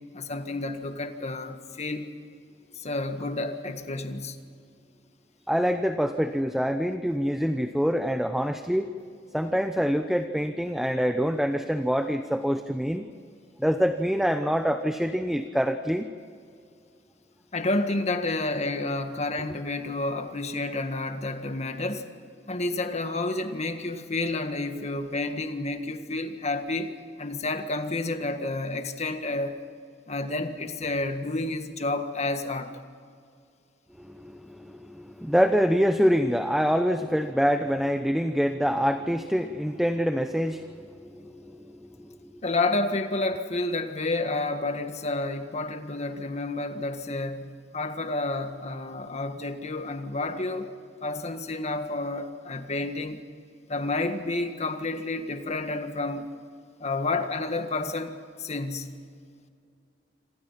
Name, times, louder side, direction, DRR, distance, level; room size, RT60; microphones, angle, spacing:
voice 1, 0.1-2.1 2.8-4.4 17.5-22.1 22.5-26.9 27.2-29.6 30.1-32.7 42.4-50.7 51.0-53.2 53.7-56.3 56.8-59.0, left 2 dB, 40° left, 1.7 m, -30 dB
voice 2, 5.5-8.9 9.3-13.1 13.6-16.1 34.0-42.3, equal, ahead, 0.8 m, -26 dB
27.0 x 26.5 x 5.8 m
head